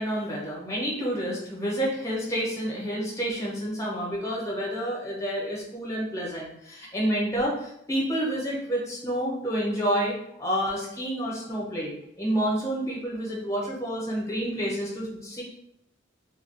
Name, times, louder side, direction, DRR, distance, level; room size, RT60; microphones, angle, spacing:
voice 1, 0.0-15.4, equal, 15° left, -5 dB, 0.8 m, -29 dB
2.3 x 2.2 x 3.9 m, 0.75 s
head